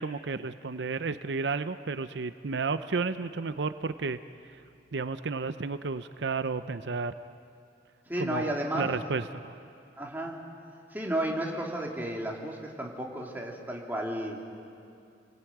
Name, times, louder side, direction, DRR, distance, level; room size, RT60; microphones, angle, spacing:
voice 1, 0.0-4.2 4.5-4.6 4.9-7.1 8.2-9.5, right 4 dB, 75° right, 11 dB, 0.7 m, -32 dB
voice 2, 8.1-8.9 10.0-10.4 10.9-14.4, right 1 dB, 10° right, -1 dB, 3.1 m, -33 dB
30.0 x 20.0 x 9.3 m, 2.5 s
head